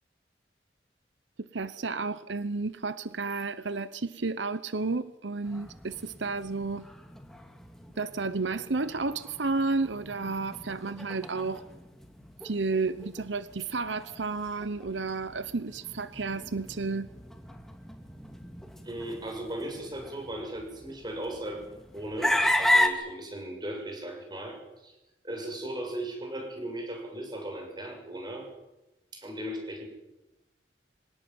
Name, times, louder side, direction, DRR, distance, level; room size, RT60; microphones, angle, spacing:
voice 1, 1.4-6.9 8.0-11.6 12.4-17.1, right 3 dB, 85° right, 0.9 m, -32 dB
sound 1, 5.4-22.9, left 1 dB, ahead, 2.4 m, -34 dB
voice 2, 18.8-21.6 21.9-24.9 25.2-28.5 29.1-29.8, right 1 dB, 25° right, 6.9 m, -37 dB
25.5 x 18.5 x 9.5 m
head